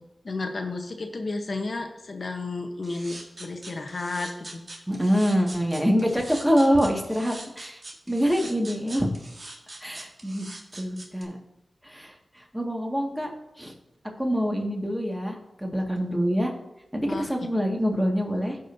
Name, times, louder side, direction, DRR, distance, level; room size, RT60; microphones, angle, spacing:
voice 1, 0.2-4.6 17.0-17.3, left 3 dB, 60° left, 5 dB, 1.0 m, -32 dB
sound 1, 2.8-11.2, right 2 dB, 55° right, 1.6 m, -42 dB
voice 2, 4.9-7.8 8.1-9.1 9.8-10.5 10.7-11.4 11.8-13.3 13.6-13.7 14.2-16.5 16.9-18.6, equal, 5° right, 1 dB, 1.9 m, -25 dB
16.0 x 5.3 x 2.7 m, 0.90 s
cardioid pair, 45°, 0 cm